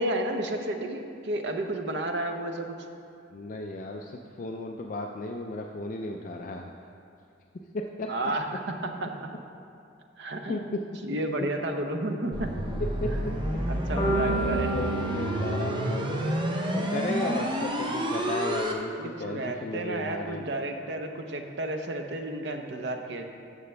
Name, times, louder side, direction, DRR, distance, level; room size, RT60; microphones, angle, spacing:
voice 1, 0.0-2.7 8.1-8.5 9.0-9.3 10.2-10.7 11.1-12.5 13.3-13.4 13.7-14.9 19.0-23.2, right 1 dB, 60° right, 4 dB, 0.7 m, -32 dB
voice 2, 3.3-6.7 7.5-8.1 8.5-8.6 10.5-10.8 13.0-13.6 13.9-16.2 16.7-20.5, left 2 dB, 40° left, 2 dB, 0.4 m, -35 dB
sound 1, 12.3-18.7, equal, 25° right, 0.6 m, -29 dB
sound 2, 14.0-18.1, right 3 dB, 20° left, 1.0 m, -33 dB
13.5 x 6.7 x 3.4 m, 2.5 s
head